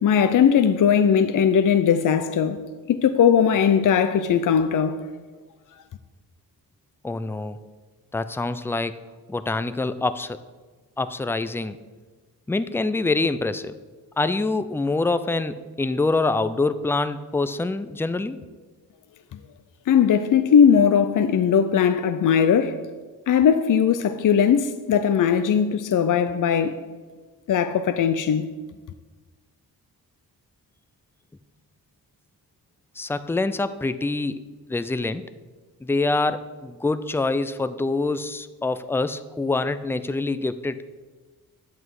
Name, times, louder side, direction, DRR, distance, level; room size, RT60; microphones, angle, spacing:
voice 1, 0.0-2.6 2.9-4.9 19.9-22.8 23.3-26.8 27.5-28.5, left 7 dB, 55° left, 0.6 m, -19 dB
voice 2, 7.0-7.6 8.1-9.0 9.3-10.4 11.0-11.8 12.5-13.8 14.2-18.4 33.0-34.4 34.7-35.3 35.8-40.8, left 3 dB, 5° left, 0.3 m, -25 dB
9.5 x 7.9 x 4.7 m
wide cardioid pair, 105°, 37 cm